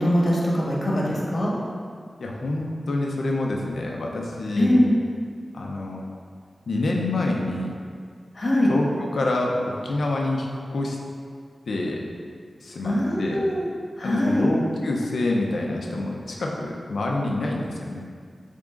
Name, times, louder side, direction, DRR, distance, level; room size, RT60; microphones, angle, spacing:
voice 1, 0.0-1.5 4.6-4.9 8.3-8.7 12.8-13.6 14.0-14.5, equal, 60° left, -4 dB, 1.5 m, -22 dB
voice 2, 2.2-4.9 5.5-6.1 6.7-7.7 8.7-9.5 9.8-11.0 11.7-12.0 12.6-13.4 14.0-18.0, left 2 dB, 85° left, -1 dB, 0.8 m, -27 dB
7.3 x 3.7 x 3.8 m, 2.1 s
cardioid pair, 45°, 0 cm